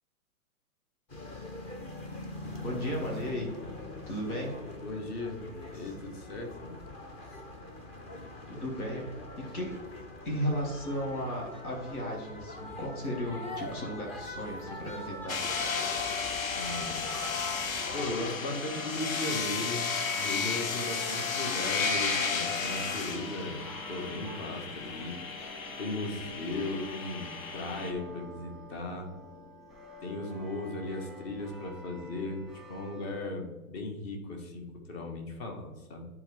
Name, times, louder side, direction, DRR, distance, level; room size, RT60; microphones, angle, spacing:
sound 1, 1.1-18.1, left 1 dB, 15° left, 0.5 m, -43 dB
voice 1, 2.6-3.5 4.1-4.6 8.5-9.0 9.5-9.7 10.2-15.4, equal, 90° left, -1 dB, 2.2 m, -34 dB
voice 2, 4.8-6.8 16.5-17.0 17.9-19.9 20.2-25.2 25.8-29.1 30.0-36.1, left 2 dB, 45° left, 3 dB, 1.8 m, -37 dB
Bench Saw Ripping Once, 15.3-27.9, left 5 dB, 70° left, 1.1 m, -33 dB
sound 2, 15.7-33.3, equal, ahead, 0.9 m, -50 dB
10.5 x 4.1 x 3.5 m, 1.2 s
hypercardioid pair, 125°, 43 cm